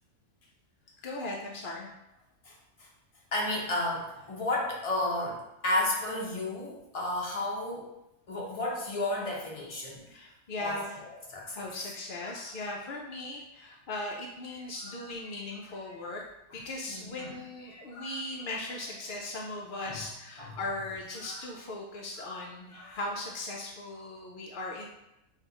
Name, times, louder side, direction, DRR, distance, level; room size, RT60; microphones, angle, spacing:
voice 1, 1.0-1.9 10.1-11.0 11.6-16.2 16.5-24.9, left 2 dB, 80° left, -1 dB, 0.4 m, -38 dB
voice 2, 3.3-7.9 8.3-10.0 10.6-10.8 11.3-11.6 12.3-12.4 14.9-15.0 16.9-17.3 17.7-18.2 19.9-20.0 20.4-20.5 21.2-21.4 22.2-22.4 22.7-22.9, left 2 dB, 30° left, -3 dB, 0.7 m, -33 dB
5.8 x 2.4 x 2.8 m, 0.88 s
omnidirectional pair, 1.5 m